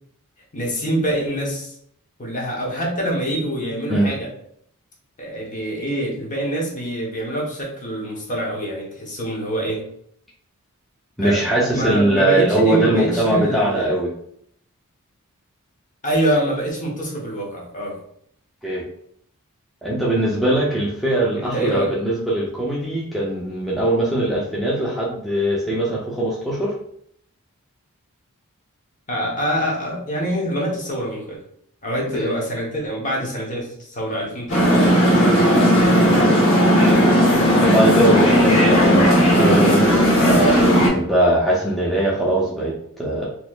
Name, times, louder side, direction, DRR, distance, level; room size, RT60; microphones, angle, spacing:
voice 1, 0.5-1.7 2.2-4.3 5.2-9.8 11.2-11.5 11.7-14.0 16.0-18.0 21.3-21.9 29.1-31.4 31.8-35.3, right 1 dB, 35° left, -2 dB, 1.0 m, -25 dB
voice 2, 11.2-14.1 18.6-18.8 19.8-26.7 32.1-32.2 36.0-36.4 37.5-43.3, right 1 dB, ahead, -6 dB, 0.6 m, -21 dB
sound 1, 34.5-40.9, equal, 65° left, 1.5 m, -15 dB
4.1 x 3.0 x 2.4 m, 0.67 s
head